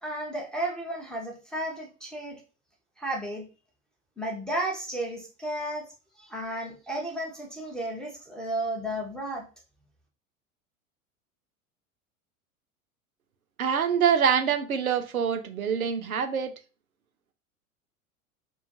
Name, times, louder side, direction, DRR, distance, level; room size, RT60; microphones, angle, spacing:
voice 1, 0.0-2.4 3.0-3.5 4.2-5.9 6.2-9.4, right 1 dB, ahead, -3 dB, 0.4 m, -33 dB
voice 2, 13.6-16.5, right 7 dB, 80° right, 8 dB, 0.5 m, -25 dB
2.4 x 2.2 x 2.7 m, 0.33 s
figure-of-eight pair, 80°, 42 cm